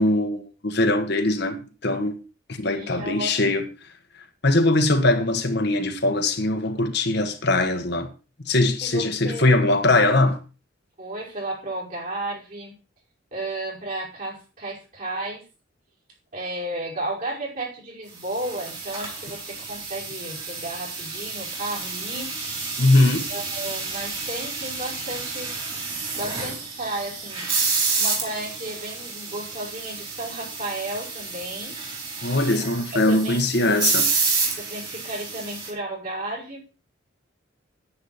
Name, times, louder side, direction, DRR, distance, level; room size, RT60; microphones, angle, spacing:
voice 1, 0.0-2.2 2.5-3.7 4.4-8.1 8.4-10.4 22.8-23.3 32.2-34.1, left 2 dB, 55° left, 1.5 m, -21 dB
voice 2, 2.7-3.6 8.8-9.5 11.0-12.7 13.3-15.5 16.3-22.3 23.3-25.8 26.1-27.5 28.0-31.8 33.1-33.4 34.6-36.6, right 1 dB, 45° right, 5.2 m, -33 dB
sound 1, 18.2-35.7, right 4 dB, 25° right, 4.0 m, -29 dB
10.0 x 9.5 x 4.3 m
head